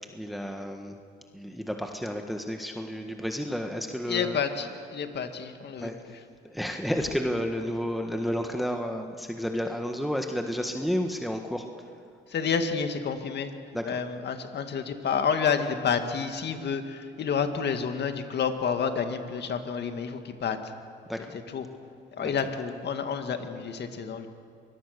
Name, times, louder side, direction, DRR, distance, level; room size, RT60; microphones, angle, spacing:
voice 1, 0.1-0.9 1.3-4.4 5.8-5.9 6.4-11.7 13.7-13.8 21.1-21.4 22.2-22.3, equal, ahead, 4 dB, 1.5 m, -31 dB
voice 2, 4.1-6.2 12.3-13.5 13.8-20.7 21.5-21.7 22.2-24.3, left 6 dB, 60° left, 7 dB, 2.0 m, -29 dB
25.0 x 21.0 x 6.8 m, 2.3 s
cardioid pair, 90°, 20 cm